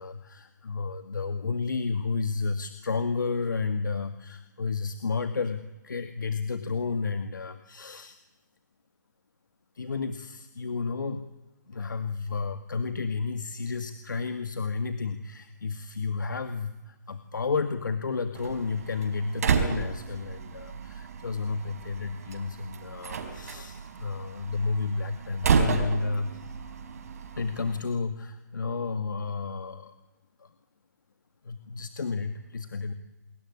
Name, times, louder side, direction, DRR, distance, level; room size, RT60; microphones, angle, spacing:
voice 1, 0.0-8.2 9.8-11.3 11.7-26.6 27.4-29.9 30.4-30.5 31.4-32.9, left 4 dB, 85° left, 9 dB, 2.0 m, -31 dB
Slam, 18.3-27.8, right 6 dB, 55° right, 4.8 m, -32 dB
29.5 x 20.5 x 9.8 m, 1.0 s
hypercardioid pair, 165°, 10 cm